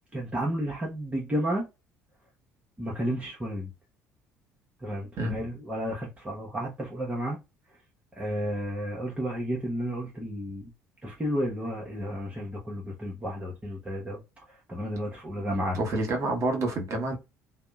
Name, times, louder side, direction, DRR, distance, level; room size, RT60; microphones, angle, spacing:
voice 1, 0.1-1.6 2.8-3.7 4.8-7.4 8.2-10.7 11.0-14.2 14.7-15.8, equal, 20° right, 0.8 m, -32 dB
voice 2, 15.7-17.2, right 2 dB, 40° right, 1.1 m, -28 dB
2.7 x 2.0 x 2.3 m
figure-of-eight pair, 55°, 8 cm